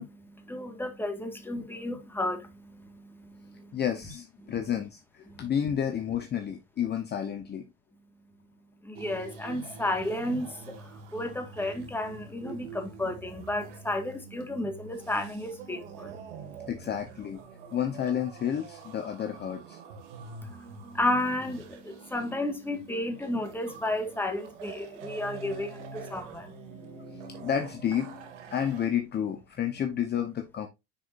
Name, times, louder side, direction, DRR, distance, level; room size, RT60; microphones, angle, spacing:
voice 1, 0.0-3.8 4.4-4.6 5.3-5.5 8.8-16.7 20.4-27.3, left 1 dB, 5° left, 1.9 m, -33 dB
voice 2, 3.7-7.7 16.7-17.4 17.7-19.8 26.7-30.7, left 9 dB, 30° left, 1.1 m, -31 dB
sound 1, 8.9-28.9, right 5 dB, 80° right, 2.3 m, -46 dB
10.0 x 4.9 x 2.7 m
supercardioid pair, 110°, 36 cm